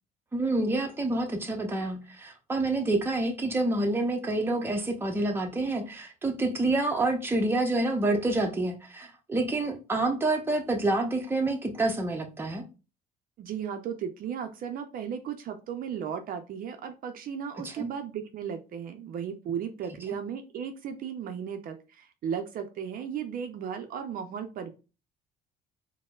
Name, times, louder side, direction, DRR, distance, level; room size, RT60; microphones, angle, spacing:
voice 1, 0.3-12.6 17.6-17.9, right 2 dB, 15° right, 0.6 m, -28 dB
voice 2, 13.4-24.7, right 8 dB, 60° right, 0.5 m, -35 dB
4.2 x 2.0 x 2.3 m
cardioid pair, 110°, 17 cm